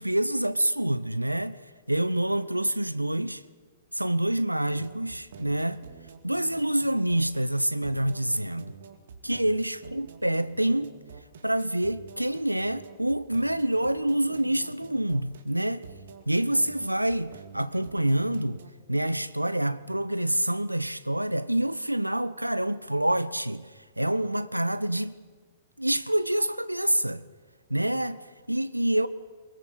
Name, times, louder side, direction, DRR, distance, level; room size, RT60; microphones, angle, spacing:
voice 1, 0.0-1.6 1.9-3.4 3.9-5.8 6.2-8.8 9.2-10.9 11.4-15.8 16.3-18.6 18.9-23.7 24.0-25.2 25.8-27.2 27.7-29.1, right 1 dB, 85° right, 0.7 m, -27 dB
sound 1, 4.7-18.7, right 6 dB, 55° right, 2.1 m, -48 dB
22.5 x 21.0 x 8.0 m
figure-of-eight pair, 110°, 0 cm